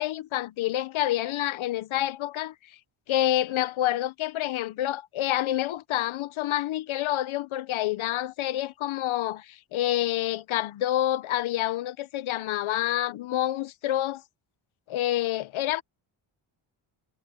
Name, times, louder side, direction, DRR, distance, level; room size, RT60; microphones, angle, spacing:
voice 1, 0.0-2.5 3.1-14.2 14.9-15.8, left 13 dB, 75° left, 0.9 m, -28 dB
wide cardioid pair, 160°, 49 cm